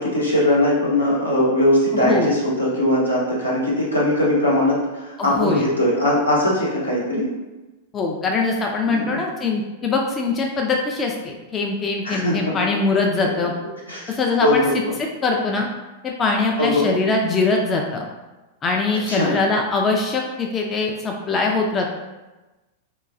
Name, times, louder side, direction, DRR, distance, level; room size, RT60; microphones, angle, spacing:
voice 1, 0.0-7.3 8.8-9.2 12.0-12.5 13.9-14.0 14.4-14.9 16.6-16.9 19.1-19.3, left 1 dB, 80° left, -5 dB, 0.8 m, -20 dB
voice 2, 1.9-2.3 5.2-5.6 7.9-13.5 14.1-14.6 15.2-15.7 16.0-18.0 18.6-21.9, left 3 dB, 25° left, 0 dB, 0.3 m, -22 dB
3.7 x 2.2 x 2.5 m, 1.1 s
figure-of-eight pair, 95°, 0 cm